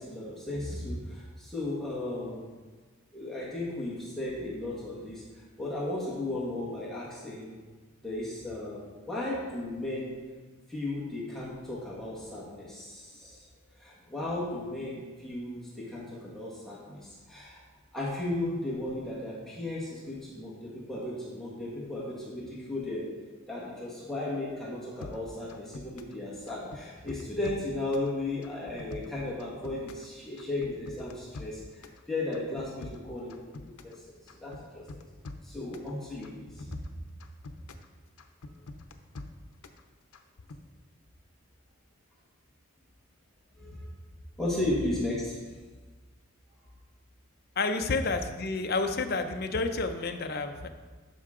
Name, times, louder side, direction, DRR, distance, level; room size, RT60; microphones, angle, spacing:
voice 1, 0.0-2.5 3.1-5.2 5.6-7.6 8.0-10.2 10.7-13.4 13.8-17.6 17.9-23.1 23.5-33.6 33.8-34.0 34.4-34.9 35.4-36.9 43.6-43.8 44.4-45.4, left 2 dB, ahead, -7 dB, 1.6 m, -35 dB
sound 1, 25.0-26.2 26.5-28.1 28.4-30.1 30.4-32.0 32.3-34.0 34.3-35.9 36.2-37.9 38.2-39.8 40.1-40.6, left 2 dB, 90° left, 0.7 m, -45 dB
voice 2, 47.6-50.7, left 3 dB, 45° left, 7 dB, 0.6 m, -30 dB
12.0 x 5.7 x 3.8 m, 1.4 s
head